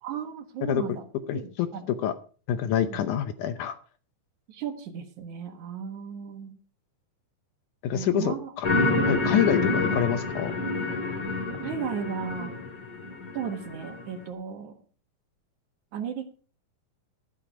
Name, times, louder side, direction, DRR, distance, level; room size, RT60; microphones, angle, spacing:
voice 1, 0.0-1.0 1.3-1.8 2.9-3.0 4.5-6.5 7.9-8.5 11.6-12.5 13.3-14.7 15.9-16.2, right 7 dB, 60° right, 7 dB, 2.7 m, -35 dB
voice 2, 1.3-2.1 2.5-3.8 7.8-8.7 9.1-10.5, left 10 dB, 75° left, 11 dB, 2.1 m, -27 dB
sound 1, 8.6-14.1, left 2 dB, 30° left, 3.3 m, -28 dB
13.0 x 9.6 x 4.9 m, 0.40 s
omnidirectional pair, 4.0 m